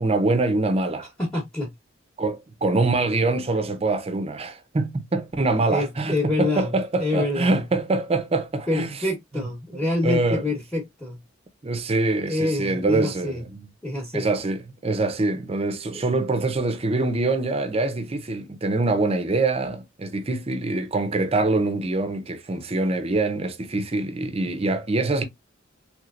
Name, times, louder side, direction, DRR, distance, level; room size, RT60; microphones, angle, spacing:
voice 1, 0.0-1.1 2.2-8.9 9.4-9.5 9.7-10.5 11.6-13.7 14.1-25.2, right 2 dB, 30° right, 0.6 m, -24 dB
voice 2, 1.2-1.7 5.7-6.7 7.0-7.6 8.7-11.2 12.3-13.4 13.8-14.3, left 2 dB, 5° left, 1.0 m, -26 dB
3.2 x 3.1 x 2.4 m
head